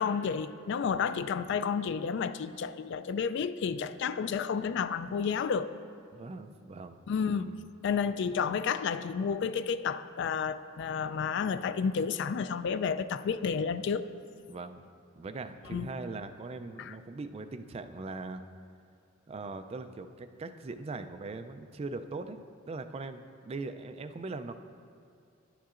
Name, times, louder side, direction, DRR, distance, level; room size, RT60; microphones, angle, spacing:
voice 1, 0.0-5.7 7.1-7.6 7.8-14.1 15.7-15.9 16.8-16.9, left 6 dB, 60° left, 13 dB, 0.3 m, -31 dB
voice 2, 6.1-7.0 7.3-7.7 14.5-14.9 15.1-18.4 19.3-22.4 22.7-24.6, right 3 dB, 30° right, 8 dB, 0.3 m, -40 dB
10.5 x 10.0 x 2.5 m, 2.3 s
head